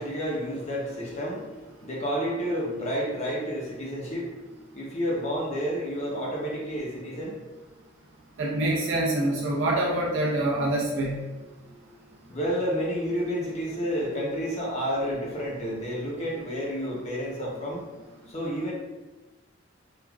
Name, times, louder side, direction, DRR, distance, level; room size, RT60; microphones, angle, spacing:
voice 1, 0.0-1.4 1.8-4.3 4.7-7.3 12.3-17.8 18.3-18.7, equal, 35° left, -4 dB, 0.7 m, -30 dB
voice 2, 8.4-11.2, right 1 dB, 70° right, -3 dB, 0.4 m, -25 dB
3.2 x 2.4 x 2.3 m, 1.2 s
head